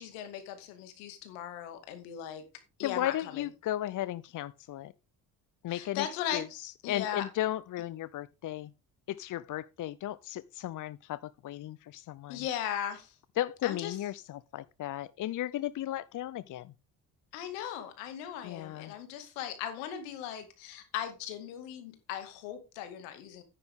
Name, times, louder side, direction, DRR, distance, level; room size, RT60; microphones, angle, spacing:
voice 1, 0.0-2.4 2.8-3.5 5.7-6.4 6.8-7.2 12.3-13.1 13.6-13.9 17.3-23.4, left 10 dB, 90° left, 2.2 m, -38 dB
voice 2, 2.8-4.9 5.6-6.1 6.3-8.7 9.1-12.4 13.4-16.7 18.4-18.9, left 13 dB, 50° left, 0.6 m, -35 dB
9.8 x 9.6 x 3.7 m
supercardioid pair, 60°, 39 cm